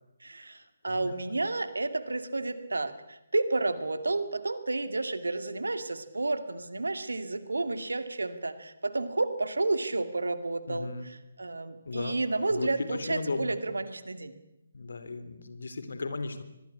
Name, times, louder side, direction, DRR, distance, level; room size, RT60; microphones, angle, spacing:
voice 1, 0.2-14.3, right 2 dB, 70° right, 11 dB, 2.4 m, -31 dB
voice 2, 0.9-1.3 10.7-11.1 11.8-12.2 12.5-13.5 14.7-16.4, left 3 dB, 60° left, 11 dB, 3.3 m, -36 dB
25.0 x 20.0 x 8.4 m, 0.89 s
figure-of-eight pair, 140°, 0 cm